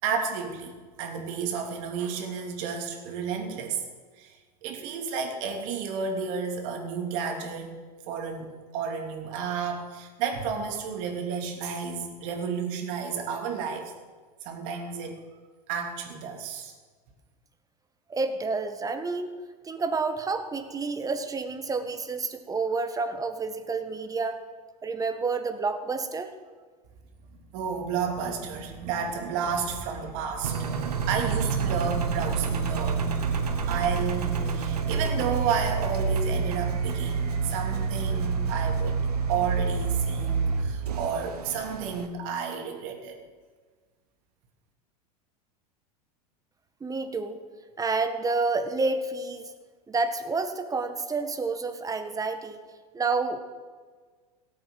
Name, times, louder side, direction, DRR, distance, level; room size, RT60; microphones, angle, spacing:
voice 1, 0.0-3.9 4.2-7.8 8.1-13.9 14.4-15.2 15.7-16.7 27.5-30.8 31.1-33.1 33.4-39.0 39.3-43.2, right 6 dB, 55° right, 3 dB, 3.0 m, -32 dB
voice 2, 18.1-19.3 19.6-24.4 24.8-26.3 46.8-47.4 47.8-49.5 49.9-52.6 52.9-53.4, right 4 dB, 15° right, 8 dB, 1.6 m, -29 dB
Engine, 30.4-42.1, right 5 dB, 80° right, 1.5 m, -28 dB
17.0 x 8.6 x 7.8 m, 1.5 s
hypercardioid pair, 90°, 20 cm